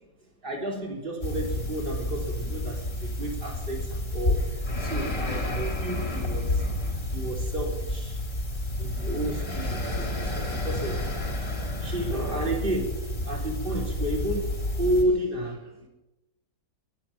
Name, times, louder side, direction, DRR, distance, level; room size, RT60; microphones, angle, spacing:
voice 1, 0.4-6.6 7.0-8.2 8.8-11.3 11.7-15.9, right 1 dB, 25° right, 0 dB, 3.7 m, -32 dB
sound 1, 1.2-15.0, left 1 dB, 30° left, 3.0 m, -30 dB
22.5 x 10.0 x 5.9 m, 0.99 s
omnidirectional pair, 2.1 m